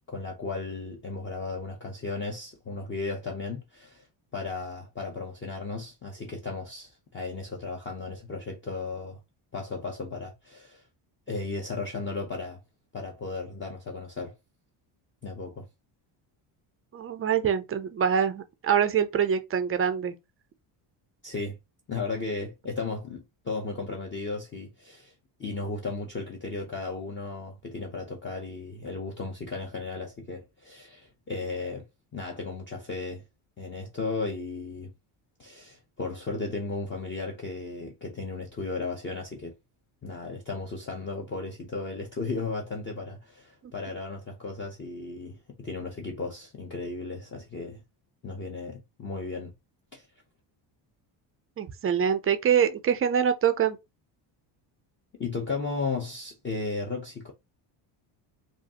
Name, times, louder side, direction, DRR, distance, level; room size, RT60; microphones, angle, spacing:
voice 1, 0.1-4.1 4.3-9.2 9.5-10.8 11.3-12.6 12.9-14.3 15.2-15.7 21.2-21.6 21.9-25.1 25.4-31.8 32.1-33.2 33.6-34.9 35.4-39.5 40.0-47.8 48.2-49.5 49.9-50.1 55.2-57.3, left 3 dB, 25° left, 0.6 m, -35 dB
voice 2, 16.9-20.1 43.6-43.7 51.6-53.8, right 8 dB, 30° right, 0.4 m, -25 dB
4.9 x 2.4 x 2.8 m
cardioid pair, 140°, 49 cm